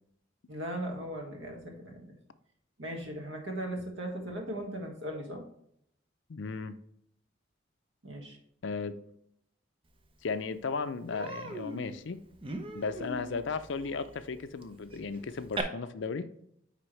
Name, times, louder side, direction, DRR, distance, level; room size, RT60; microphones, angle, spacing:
voice 1, 0.5-2.2 2.8-5.4 8.0-8.4, right 1 dB, 70° right, 1.6 m, -38 dB
voice 2, 6.3-6.8 8.6-9.0 10.2-12.2 12.7-16.3, left 4 dB, 70° left, 0.5 m, -35 dB
Human voice, 10.1-10.2 10.5-10.7 11.1-15.6, right 2 dB, 25° right, 0.6 m, -40 dB
9.2 x 3.5 x 3.2 m
head